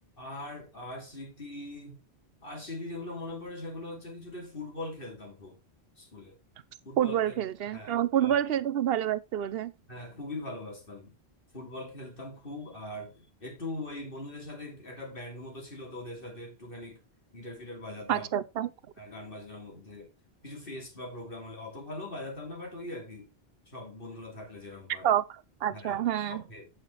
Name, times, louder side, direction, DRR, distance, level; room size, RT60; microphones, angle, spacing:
voice 1, 0.2-2.0 2.4-5.6 6.0-6.4 6.8-7.4 7.7-8.4 9.9-11.2 11.5-17.0 17.3-18.3 19.0-20.1 20.4-23.3 23.7-25.1 25.7-26.7, left 2 dB, 60° left, 3.2 m, -41 dB
voice 2, 7.0-9.7 18.1-18.7 25.0-26.4, right 10 dB, 70° right, 0.9 m, -28 dB
8.4 x 5.9 x 4.1 m
omnidirectional pair, 1.1 m